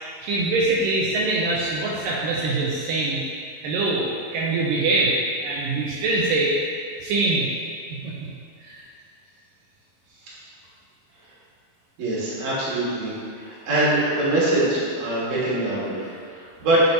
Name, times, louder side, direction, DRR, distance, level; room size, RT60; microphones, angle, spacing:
voice 1, 0.2-3.2 3.6-5.1 5.4-6.6 7.0-7.5 8.0-8.3 8.6-8.8, right 2 dB, 75° right, -4 dB, 2.3 m, -23 dB
voice 2, 12.0-13.1 13.4-16.8, right 2 dB, 55° right, -8 dB, 2.9 m, -23 dB
8.6 x 6.7 x 2.9 m, 2.2 s
omnidirectional pair, 4.1 m